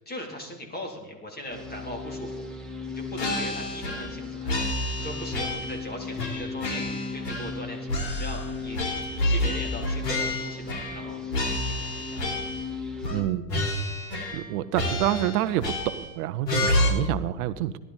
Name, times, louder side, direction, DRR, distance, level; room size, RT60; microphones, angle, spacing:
voice 1, 0.0-2.5 2.8-12.4, equal, 20° left, 2 dB, 3.8 m, -40 dB
sound 1, 1.5-13.2, left 3 dB, ahead, 2.3 m, -37 dB
sound 2, 3.2-4.2 4.5-5.8 6.2-7.6 7.9-11.1 11.3-12.7 13.0-13.2 13.5-14.5 14.7-16.1 16.5-16.9, left 1 dB, 85° left, 4.6 m, -29 dB
voice 2, 13.1-13.7 14.3-17.8, right 13 dB, 60° right, 13 dB, 0.8 m, -28 dB
18.5 x 12.5 x 4.4 m, 1.1 s
hypercardioid pair, 110°, 48 cm